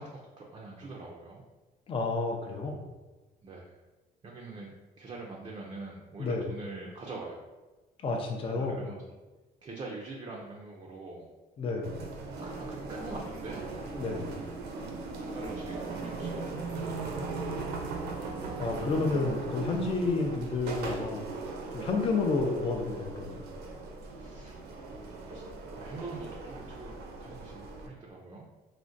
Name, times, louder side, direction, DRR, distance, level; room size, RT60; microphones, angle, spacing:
voice 1, 0.0-1.4 3.4-3.7 4.2-7.5 8.5-9.0 9.6-11.3 12.4-14.1 15.3-17.5 20.9-21.0 24.2-28.4, right 3 dB, 30° right, -2 dB, 0.4 m, -44 dB
voice 2, 1.9-2.9 6.2-6.5 8.0-8.8 11.6-12.1 14.0-14.4 18.6-21.3 21.7-23.4, left 3 dB, 35° left, 2 dB, 0.4 m, -30 dB
sound 1, 11.8-27.9, right 3 dB, 75° right, 0.5 m, -38 dB
3.6 x 2.1 x 2.6 m, 1.2 s
cardioid pair, 110°, 17 cm